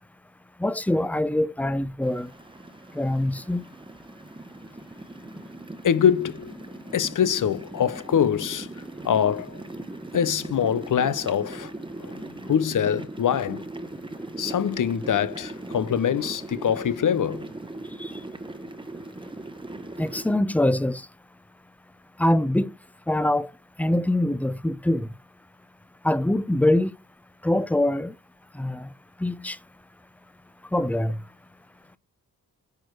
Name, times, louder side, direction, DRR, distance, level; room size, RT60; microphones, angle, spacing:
voice 1, 0.6-2.3 2.9-3.6 18.0-18.1 20.0-21.1 22.2-22.7 23.1-23.5 23.8-25.1 26.0-26.9 27.4-28.1 28.6-28.9 29.2-29.6 30.7-31.2, left 1 dB, 5° left, 0.7 m, -24 dB
sound 1, 2.0-20.4, right 2 dB, 15° right, 1.1 m, -39 dB
voice 2, 5.8-6.6 6.9-9.7 10.1-11.7 12.0-13.6 14.4-17.5, left 8 dB, 55° left, 0.8 m, -24 dB
9.7 x 4.4 x 4.6 m
supercardioid pair, 45°, 39 cm